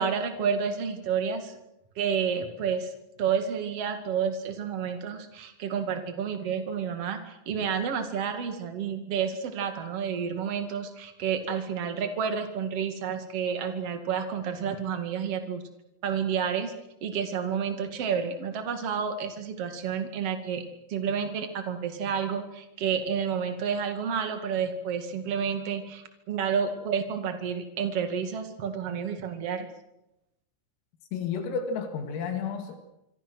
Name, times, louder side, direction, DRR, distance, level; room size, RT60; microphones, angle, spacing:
voice 1, 0.0-1.6 2.0-2.9 3.2-15.6 16.0-16.7 17.0-29.7, right 7 dB, 45° right, 7 dB, 2.0 m, -30 dB
voice 2, 31.1-32.8, left 6 dB, 80° left, 6 dB, 4.7 m, -31 dB
25.5 x 25.0 x 6.3 m, 0.86 s
omnidirectional pair, 6.0 m